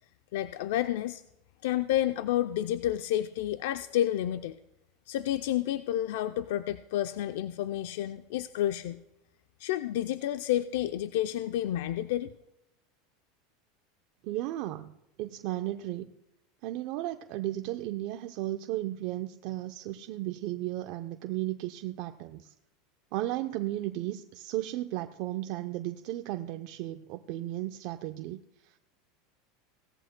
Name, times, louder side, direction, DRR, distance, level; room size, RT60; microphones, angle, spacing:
voice 1, 0.3-1.2 1.6-4.6 5.1-9.0 9.6-12.3, left 12 dB, 75° left, 9 dB, 0.5 m, -30 dB
voice 2, 14.2-16.1 16.6-22.5 23.1-28.8, right 15 dB, 60° right, 7 dB, 0.6 m, -35 dB
18.0 x 14.0 x 2.2 m, 0.87 s
supercardioid pair, 120°, 0 cm